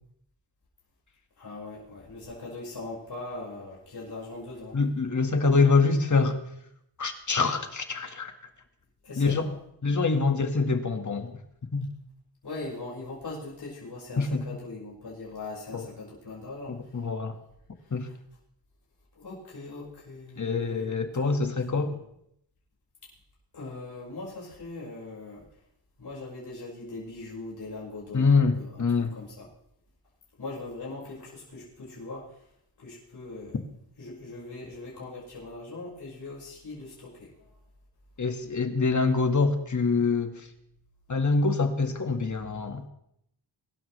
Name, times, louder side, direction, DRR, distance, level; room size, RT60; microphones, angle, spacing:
voice 1, 1.4-4.8 9.0-9.5 12.4-17.0 17.8-18.1 19.1-21.4 21.7-22.0 23.5-25.4 26.0-29.5 30.4-32.4 32.8-33.6 34.0-37.5, left 2 dB, 65° left, -6 dB, 5.5 m, -41 dB
voice 2, 4.7-6.4 7.0-8.3 9.2-9.5 9.8-11.3 11.7-11.9 14.2-14.4 15.7-15.8 16.9-17.3 17.9-18.1 20.4-21.9 28.1-29.2 38.2-40.5 41.1-42.9, left 4 dB, 45° left, 6 dB, 1.9 m, -25 dB
23.0 x 12.0 x 3.3 m, 0.76 s
cardioid pair, 85°, 41 cm